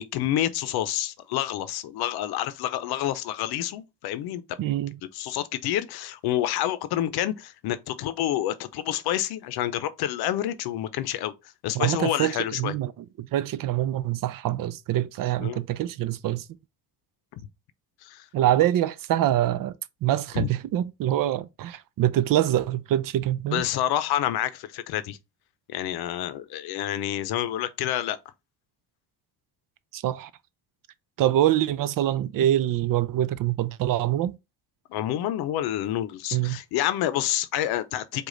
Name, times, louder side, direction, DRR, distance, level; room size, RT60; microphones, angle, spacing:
voice 1, 0.0-4.4 5.1-11.3 11.6-12.7 15.4-15.6 17.4-17.5 18.0-18.3 20.3-20.5 23.5-25.2 25.7-28.2 34.9-38.3, left 12 dB, 80° left, 0.6 m, -28 dB
voice 2, 4.6-5.0 11.7-12.3 12.6-12.9 13.2-16.4 18.3-19.7 20.0-23.6 29.9-30.3 31.2-34.4 36.3-36.6, right 12 dB, 60° right, 0.5 m, -25 dB
4.9 x 2.4 x 3.8 m
cardioid pair, 95°, 38 cm